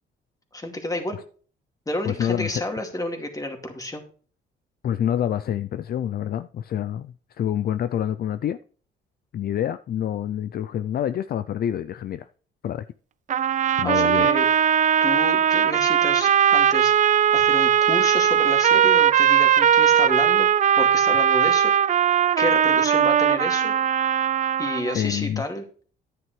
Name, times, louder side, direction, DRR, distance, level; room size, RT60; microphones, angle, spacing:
voice 1, 0.5-1.2 1.9-4.0 13.8-14.5 15.0-20.5 20.8-22.0 22.4-23.7 24.6-25.6, left 1 dB, 15° left, 2.3 m, -30 dB
voice 2, 2.0-2.6 4.8-8.6 9.3-12.3 12.6-12.9 13.8-14.3 24.9-25.4, left 10 dB, 50° left, 0.4 m, -27 dB
sound 1, 13.3-25.0, right 9 dB, 40° right, 0.4 m, -19 dB
11.0 x 9.3 x 3.2 m
cardioid pair, 90°, 20 cm